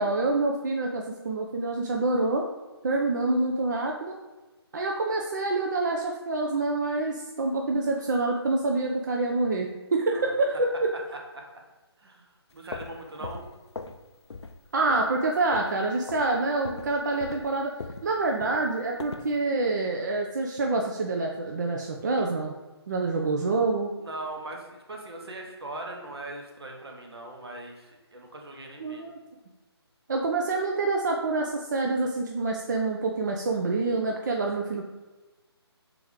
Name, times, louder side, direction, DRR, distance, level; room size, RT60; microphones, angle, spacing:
voice 1, 0.0-2.5 2.8-4.2 4.7-10.7 14.7-17.7 18.0-22.5 22.9-23.9 28.8-29.2 30.1-34.9, right 3 dB, 45° right, 1 dB, 0.4 m, -27 dB
voice 2, 12.0-13.5 23.0-23.1 24.0-29.1, right 2 dB, 65° right, 1 dB, 1.0 m, -40 dB
sound 1, 12.5-14.0 14.3-14.6 14.9-15.8 16.1-16.3 16.6-19.3, left 3 dB, 80° left, 0.4 m, -40 dB
3.7 x 2.9 x 4.7 m, 1.2 s
figure-of-eight pair, 145°, 14 cm